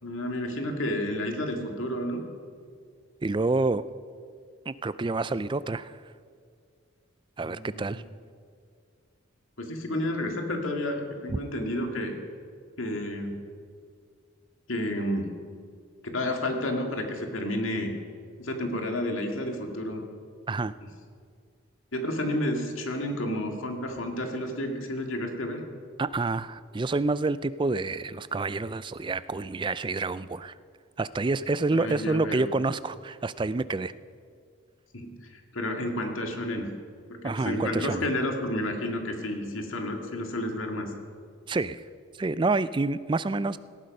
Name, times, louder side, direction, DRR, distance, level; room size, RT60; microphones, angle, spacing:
voice 1, 0.0-2.2 7.4-8.0 9.6-12.1 12.8-13.3 14.7-15.3 16.0-17.9 18.4-20.0 20.8-20.9 21.9-25.6 31.7-32.5 34.9-36.7 37.1-40.9, left 1 dB, 70° left, 3 dB, 2.1 m, -31 dB
voice 2, 3.2-3.8 4.7-6.0 7.4-8.0 11.3-11.4 20.5-20.7 26.0-30.5 31.0-33.9 37.2-38.1 41.5-41.8 42.2-43.6, right 3 dB, 20° right, 16 dB, 0.3 m, -28 dB
18.0 x 14.0 x 5.4 m, 2.2 s
head